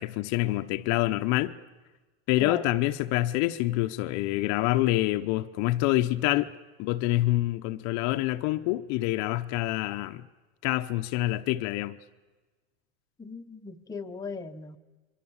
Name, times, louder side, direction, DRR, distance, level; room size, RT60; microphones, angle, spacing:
voice 1, 0.0-1.6 2.3-6.5 6.8-10.2 10.6-12.0, left 17 dB, 50° left, 0.9 m, -26 dB
voice 2, 13.2-14.8, left 5 dB, 10° left, 1.1 m, -38 dB
26.0 x 23.5 x 7.3 m
supercardioid pair, 125°, 35 cm